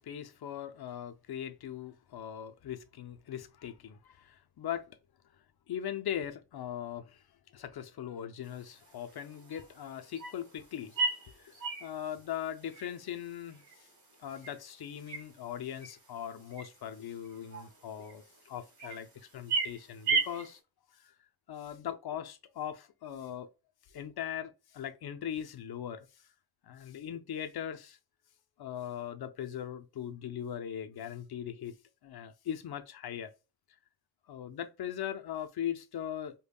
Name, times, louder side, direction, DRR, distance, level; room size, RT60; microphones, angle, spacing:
voice 1, 0.0-5.0 5.7-7.2 7.5-13.9 14.2-20.6 20.9-21.1 21.5-23.5 23.9-26.3 26.6-28.0 28.6-31.7 32.0-33.3 34.3-36.3, left 10 dB, 80° left, 0.6 m, -40 dB
sound 1, 8.4-20.6, right 4 dB, 50° right, 1.5 m, -38 dB
5.2 x 2.2 x 2.2 m
wide cardioid pair, 100°, 37 cm